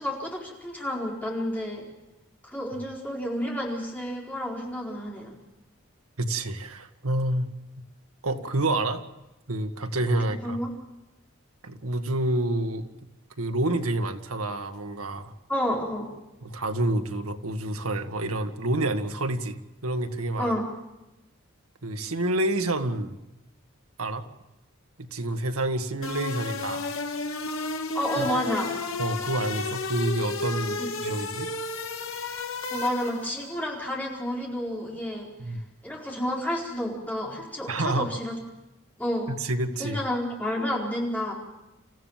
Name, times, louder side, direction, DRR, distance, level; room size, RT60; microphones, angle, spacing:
voice 1, 0.0-1.9 2.4-5.3 10.4-10.7 15.5-16.1 20.4-20.7 27.9-28.7 30.8-30.9 32.7-35.3 35.8-38.3 39.0-39.3 39.8-41.3, equal, 5° left, -2 dB, 4.5 m, -30 dB
voice 2, 6.2-7.5 8.2-9.0 9.5-10.6 11.6-12.9 13.4-15.3 16.4-20.5 21.8-23.2 24.0-24.2 25.0-26.9 28.2-28.3 29.0-31.5 35.4-35.6 37.7-38.1 39.3-40.0, right 1 dB, 85° right, 7 dB, 1.7 m, -28 dB
sound 1, 26.0-33.4, left 3 dB, 70° left, 1.7 m, -32 dB
27.5 x 15.0 x 7.4 m, 0.97 s
head